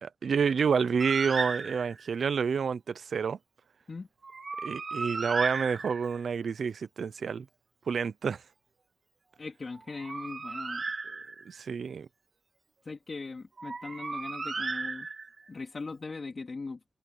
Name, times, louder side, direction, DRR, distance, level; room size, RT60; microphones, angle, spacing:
voice 1, 0.0-3.4 4.6-7.5 7.9-8.4 11.5-12.1, right 6 dB, 65° right, 0.6 m, -29 dB
Bird, 1.0-2.2 4.2-6.3 9.7-11.6 13.6-15.5, right 4 dB, 40° right, 2.3 m, -35 dB
voice 2, 9.4-10.8 12.8-15.1 15.5-17.0, left 4 dB, 40° left, 2.9 m, -40 dB
wide cardioid pair, 145°, 0 cm